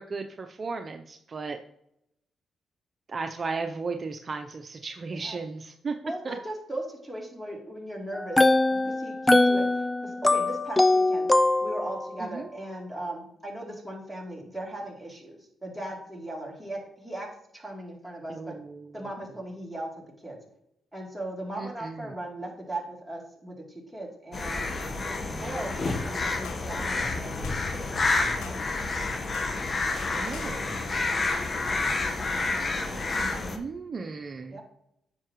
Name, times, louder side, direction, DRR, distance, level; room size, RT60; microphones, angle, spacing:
voice 1, 0.0-1.6 3.1-5.9 6.2-6.4 12.2-12.5 18.3-18.9 21.6-22.1 25.3-25.6 30.1-30.9 33.2-34.6, right 4 dB, 45° right, 5 dB, 0.6 m, -35 dB
voice 2, 6.0-11.3 11.6-17.3 17.5-18.6 18.9-19.9 20.2-20.4 20.9-24.7 25.1-27.5 27.8-28.8 31.5-31.9 34.5-34.6, right 1 dB, 5° right, -2 dB, 3.1 m, -38 dB
sound 1, 8.1-12.1, left 2 dB, 15° left, 0.4 m, -22 dB
sound 2, 24.3-33.6, left 3 dB, 45° left, 1.2 m, -29 dB
sound 3, 26.4-26.7 27.4-27.6 28.4-28.6 29.3-29.6 30.3-30.5, left 6 dB, 90° left, 1.1 m, -44 dB
9.7 x 6.7 x 3.1 m, 0.75 s
cardioid pair, 70°, 0 cm